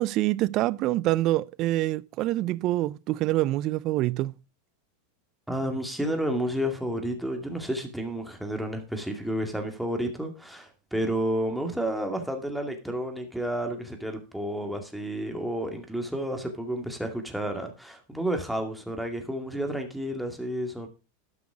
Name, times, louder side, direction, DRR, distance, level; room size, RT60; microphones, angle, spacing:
voice 1, 0.0-4.3, right 16 dB, 45° right, 0.4 m, -26 dB
voice 2, 5.5-20.9, right 1 dB, ahead, 2.3 m, -31 dB
12.5 x 5.9 x 4.9 m
hypercardioid pair, 110°, 0 cm